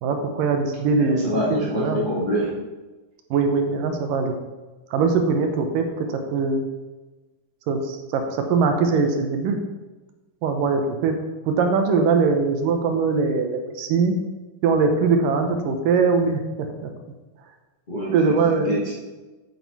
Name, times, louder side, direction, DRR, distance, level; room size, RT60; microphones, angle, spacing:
voice 1, 0.0-2.1 3.3-4.3 4.9-6.6 7.7-9.6 10.4-11.1 11.4-14.1 14.6-16.9 18.1-18.7, right 4 dB, 75° right, 5 dB, 2.4 m, -21 dB
voice 2, 1.0-2.5 17.9-18.4 18.7-18.9, equal, 15° left, -8 dB, 1.8 m, -25 dB
9.3 x 8.1 x 4.1 m, 1.2 s
omnidirectional pair, 4.2 m